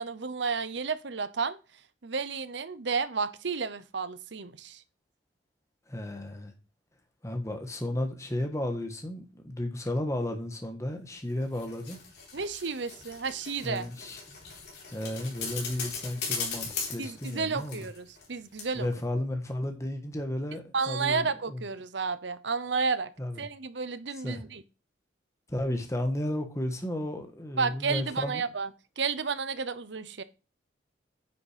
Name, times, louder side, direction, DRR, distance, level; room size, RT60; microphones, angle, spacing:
voice 1, 0.0-1.6 2.0-4.8 12.3-13.9 17.0-18.9 20.7-23.1 23.4-24.6 27.6-28.7 29.0-30.2, right 5 dB, 70° right, 0.8 m, -31 dB
voice 2, 5.9-6.5 7.2-12.0 13.6-14.2 14.9-17.8 18.7-21.6 23.2-23.4 24.2-24.4 25.5-28.4, left 1 dB, 15° left, 1.5 m, -33 dB
sound 1, 11.3-18.3 18.6-18.7, left 5 dB, 60° left, 4.0 m, -39 dB
9.7 x 6.2 x 5.1 m
head